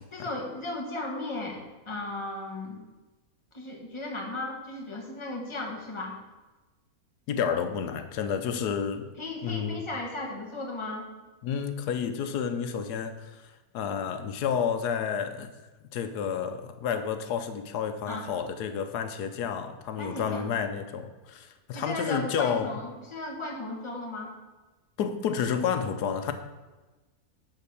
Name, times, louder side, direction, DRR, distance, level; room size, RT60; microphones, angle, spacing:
voice 1, 0.1-2.8 3.5-6.2 9.2-11.1 18.1-18.3 20.0-20.4 21.7-24.3, left 2 dB, 20° left, 0 dB, 1.5 m, -36 dB
voice 2, 7.3-9.1 9.4-9.8 11.4-13.4 13.7-15.5 15.9-22.7 25.0-26.3, left 7 dB, 90° left, 8 dB, 1.3 m, -30 dB
10.5 x 4.4 x 6.9 m, 1.2 s
omnidirectional pair, 1.7 m